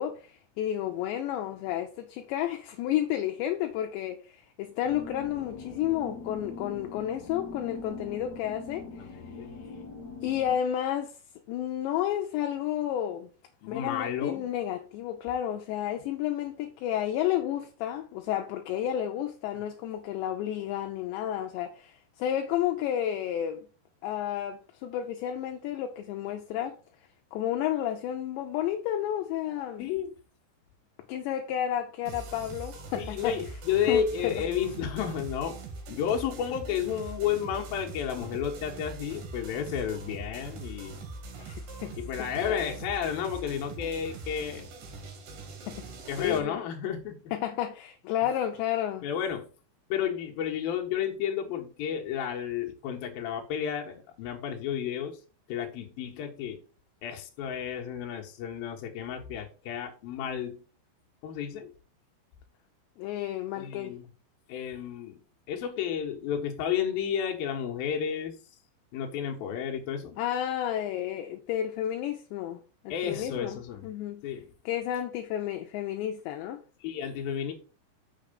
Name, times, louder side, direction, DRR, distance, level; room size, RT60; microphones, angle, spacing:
voice 1, 0.0-9.2 9.6-9.7 10.2-11.2 11.5-13.3 13.7-23.7 24.0-26.8 27.3-29.9 31.1-33.4 33.9-34.4 41.4-42.6 45.7-45.8 46.2-46.5 47.3-49.1 63.0-64.0 70.2-73.6 73.8-74.2 74.7-76.6, left 11 dB, 80° left, 2.8 m, -31 dB
sound 1, 4.8-10.6, left 3 dB, 45° left, 2.5 m, -42 dB
voice 2, 9.0-9.5 13.6-14.5 29.8-30.1 33.0-41.0 42.0-44.7 45.6-45.8 46.1-47.3 49.0-49.5 49.9-55.2 55.5-56.6 57.0-60.6 61.2-61.7 63.6-64.1 64.5-65.2 65.5-68.4 68.9-70.2 72.9-73.9 74.2-74.5 76.8-77.5, left 8 dB, 65° left, 2.8 m, -32 dB
sound 2, 32.1-46.4, right 3 dB, 60° right, 3.0 m, -42 dB
6.7 x 6.3 x 5.3 m
omnidirectional pair, 5.4 m